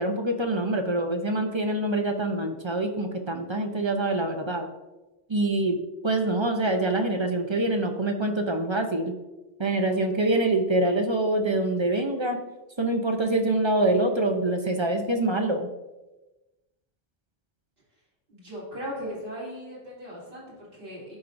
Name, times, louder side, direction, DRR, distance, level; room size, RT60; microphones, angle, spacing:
voice 1, 0.0-4.7 5.3-5.8 6.0-9.1 9.6-12.4 12.8-15.7, right 2 dB, 30° right, 4 dB, 0.6 m, -25 dB
voice 2, 18.3-21.2, equal, 55° right, -7 dB, 3.1 m, -38 dB
12.5 x 4.5 x 2.6 m, 1.1 s
omnidirectional pair, 1.1 m